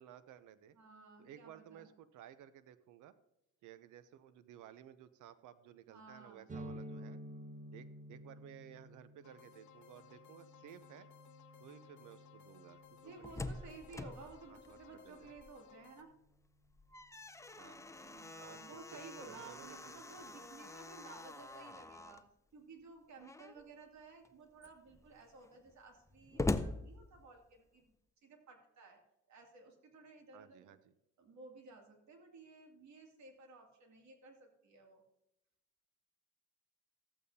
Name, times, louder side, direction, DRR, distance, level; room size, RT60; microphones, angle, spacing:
voice 1, 0.0-0.8 1.2-3.1 3.6-7.2 7.7-11.1 11.6-13.7 14.1-14.2 14.5-15.3 17.6-17.9 18.4-19.9 20.4-20.5 30.3-30.9, right 10 dB, 85° right, 13 dB, 0.7 m, -56 dB
voice 2, 0.7-1.9 5.9-6.5 13.0-16.1 18.0-22.2 22.5-27.9 28.2-29.0 29.3-30.7 31.2-35.0, right 3 dB, 70° right, 3 dB, 2.6 m, -55 dB
sound 1, 6.5-14.1, right 1 dB, 25° right, 1.4 m, -52 dB
sound 2, 9.2-16.0, left 9 dB, 75° left, 1.1 m, -61 dB
Slam, 12.9-15.7 16.1-16.2 16.6-22.3 23.2-23.7 24.2-24.3 24.6-27.7, left 2 dB, 10° left, 0.6 m, -44 dB
14.0 x 8.5 x 2.8 m, 0.86 s
cardioid pair, 90°, 30 cm